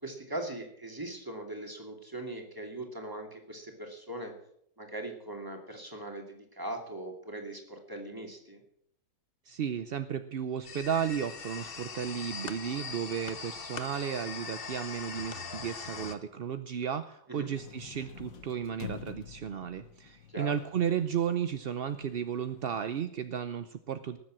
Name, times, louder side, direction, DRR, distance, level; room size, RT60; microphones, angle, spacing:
voice 1, 0.0-4.3 4.8-8.6 17.3-17.5 20.3-20.5, right 1 dB, 15° right, 3 dB, 2.6 m, -40 dB
voice 2, 9.5-24.2, right 8 dB, 55° right, 11 dB, 0.6 m, -34 dB
sound 1, 10.6-16.2, left 5 dB, 40° left, 1.2 m, -41 dB
sound 2, 17.5-23.0, left 7 dB, 60° left, 1.5 m, -48 dB
19.5 x 7.5 x 7.6 m, 0.70 s
omnidirectional pair, 1.7 m